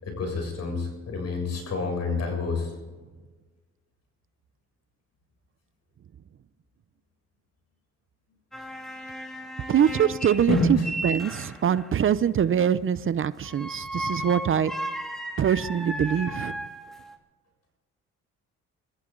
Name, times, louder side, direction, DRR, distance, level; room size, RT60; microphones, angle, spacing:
voice 1, 0.0-2.7 10.5-10.9, left 2 dB, 60° left, 2 dB, 7.1 m, -27 dB
sound 1, 8.5-11.9 13.4-17.2, right 1 dB, ahead, 2.7 m, -35 dB
voice 2, 9.7-10.6 11.0-14.7 15.4-16.6, right 8 dB, 45° right, 16 dB, 0.6 m, -23 dB
25.5 x 14.5 x 3.9 m, 1.3 s
cardioid pair, 90°, 30 cm